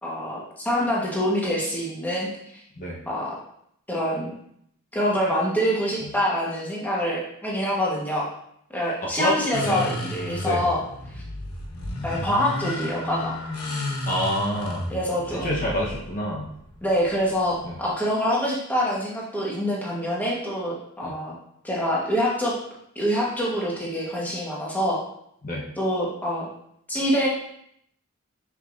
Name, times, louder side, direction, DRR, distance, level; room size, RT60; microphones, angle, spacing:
voice 1, 0.0-2.3 3.1-3.3 3.9-4.3 4.9-8.3 8.7-10.8 11.1-11.2 12.0-13.4 14.9-15.6 16.8-21.4 21.6-22.6 22.9-25.0 25.8-26.5 26.9-27.3, equal, 10° left, -5 dB, 1.3 m, -25 dB
voice 2, 9.0-9.4 9.6-10.0 10.4-10.6 14.1-14.9 15.3-16.5 17.6-17.7 21.0-21.1 25.4-25.6, equal, 40° left, -4 dB, 1.0 m, -27 dB
sound 1, 9.5-17.9, left 1 dB, 80° left, 1.1 m, -33 dB
6.5 x 5.9 x 2.6 m, 0.72 s
head